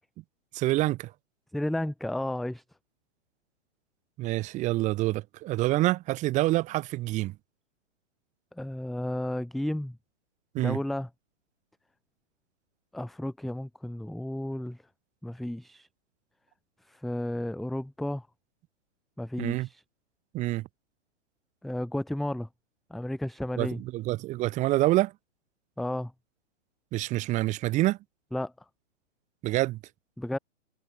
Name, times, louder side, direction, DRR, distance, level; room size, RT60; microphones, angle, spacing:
voice 1, 0.5-1.1 4.2-7.3 10.5-10.8 19.4-19.7 20.3-20.7 23.6-25.1 26.9-28.0 29.4-29.8, right 17 dB, 20° right, 3.4 m, -27 dB
voice 2, 1.5-2.6 8.6-10.0 10.6-11.1 12.9-14.8 15.2-15.9 16.9-18.3 19.2-19.8 21.6-22.5 22.9-23.8 25.8-26.1 28.3-28.5 30.2-30.4, left 1 dB, ahead, 0.7 m, -32 dB
hypercardioid pair, 160°, 36 cm